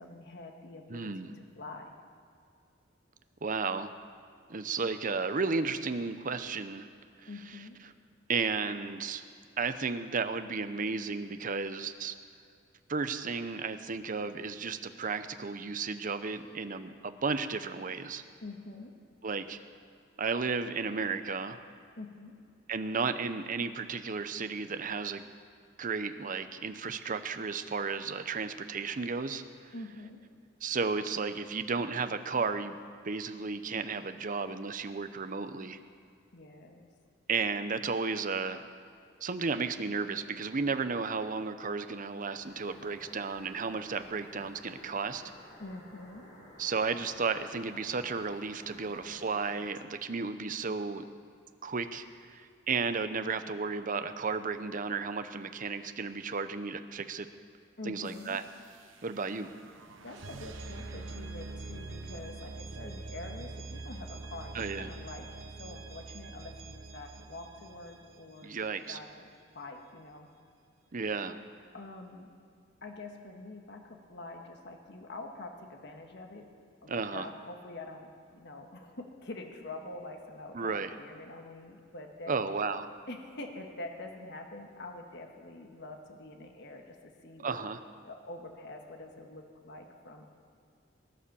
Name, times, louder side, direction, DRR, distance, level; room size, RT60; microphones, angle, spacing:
voice 1, 0.0-1.9 7.3-7.8 18.4-18.9 22.0-22.3 29.7-30.2 36.3-36.9 45.6-46.3 57.8-58.4 60.0-65.3 65.6-70.3 71.7-72.3 72.8-76.4 76.8-82.4 83.1-87.6 88.0-90.3, left 2 dB, 60° left, 3 dB, 1.5 m, -45 dB
voice 2, 0.9-1.3 3.4-3.9 4.5-6.9 7.2-7.3 8.3-9.2 9.6-12.1 12.9-18.2 19.2-19.6 20.2-21.6 22.7-25.3 25.8-29.7 30.6-32.8 33.0-35.8 37.3-38.6 39.2-45.2 46.6-51.0 51.6-57.3 57.9-58.4 59.0-59.5 64.5-64.9 68.4-69.0 70.9-71.3 76.9-77.3 80.5-80.9 82.3-82.9 87.4-87.8, right 4 dB, 45° right, 10 dB, 0.7 m, -33 dB
sound 1, 42.4-49.8, equal, 40° left, 5.2 m, -54 dB
sound 2, 58.1-68.9, right 3 dB, 75° right, 1.0 m, -45 dB
19.5 x 10.0 x 6.9 m, 2.3 s
head